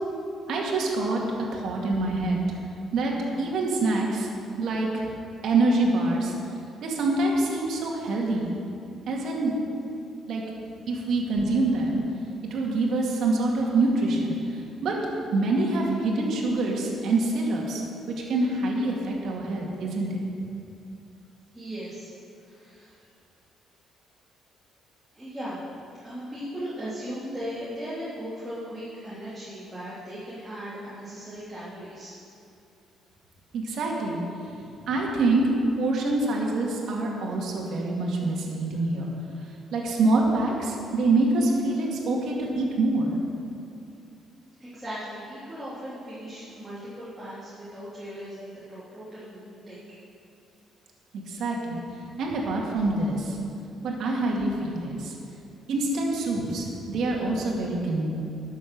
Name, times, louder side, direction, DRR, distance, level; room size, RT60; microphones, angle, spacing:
voice 1, 0.5-1.2 1.5-2.4 2.9-4.3 4.6-4.9 5.4-6.3 6.8-8.5 9.1-9.6 10.3-10.4 10.9-12.0 12.5-14.4 14.8-15.0 15.3-17.8 18.3-20.1 33.5-34.2 34.9-35.4 35.8-39.1 39.7-43.1 51.3-51.8 52.2-53.4 53.8-55.1 55.7-58.1, right 2 dB, 65° right, -2 dB, 2.2 m, -25 dB
voice 2, 21.5-22.1 22.4-23.0 25.1-25.6 26.0-32.1 44.6-49.8 56.8-56.9, equal, 5° right, -11 dB, 3.0 m, -38 dB
12.5 x 7.3 x 6.1 m, 2.5 s
cardioid pair, 115°, 0 cm